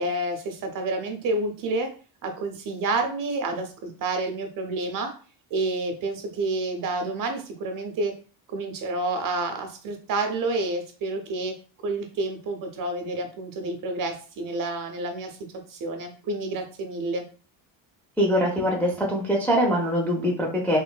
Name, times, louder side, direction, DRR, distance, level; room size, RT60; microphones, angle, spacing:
voice 1, 0.0-1.9 2.2-5.1 5.5-8.1 8.5-11.5 11.8-15.4 15.7-17.2, right 2 dB, 45° right, 5 dB, 0.7 m, -29 dB
voice 2, 18.2-20.8, equal, 5° left, -3 dB, 0.4 m, -23 dB
3.2 x 2.5 x 2.2 m, 0.38 s
cardioid pair, 130°, 46 cm